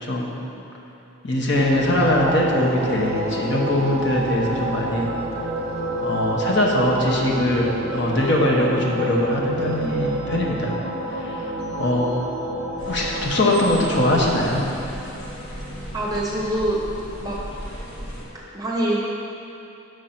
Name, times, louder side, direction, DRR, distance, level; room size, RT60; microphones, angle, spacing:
voice 1, 0.0-0.4 1.2-5.1 6.0-10.7 11.1-11.5 11.8-12.1 12.9-14.6, left 1 dB, 55° left, -2 dB, 0.9 m, -21 dB
sound 1, 1.5-13.7, equal, 30° left, 0.8 m, -30 dB
sound 2, 2.1-14.4, right 4 dB, 45° right, 0.4 m, -34 dB
sound 3, 12.8-18.3, equal, 80° left, 1.4 m, -36 dB
voice 2, 15.9-16.8 17.2-17.4 18.5-19.0, right 1 dB, 15° right, -4 dB, 0.9 m, -24 dB
6.5 x 5.2 x 5.8 m, 2.9 s
head